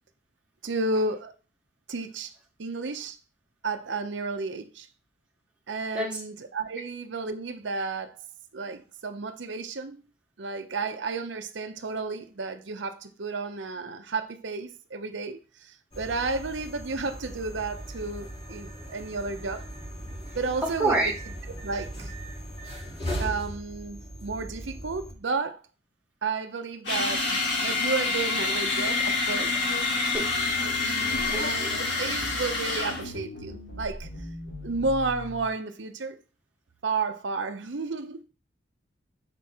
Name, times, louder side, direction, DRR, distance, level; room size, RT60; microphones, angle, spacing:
voice 1, 0.6-1.3 1.9-2.3 2.6-3.2 3.6-4.9 5.7-8.2 8.5-10.0 10.4-19.6 20.3-21.0 21.6-22.1 23.2-25.6 26.2-29.5 30.6-34.1 34.6-36.2 36.8-38.2, right 3 dB, 80° right, 0.7 m, -32 dB
sound 1, 15.9-25.1, equal, 30° left, 3.1 m, -38 dB
voice 2, 20.6-21.1 30.0-30.3 31.3-31.7, right 2 dB, 5° right, 1.7 m, -27 dB
sound 2, 26.8-33.1, left 3 dB, 80° left, 3.6 m, -27 dB
sound 3, 30.1-35.5, equal, 65° left, 4.6 m, -41 dB
6.8 x 4.8 x 4.3 m
head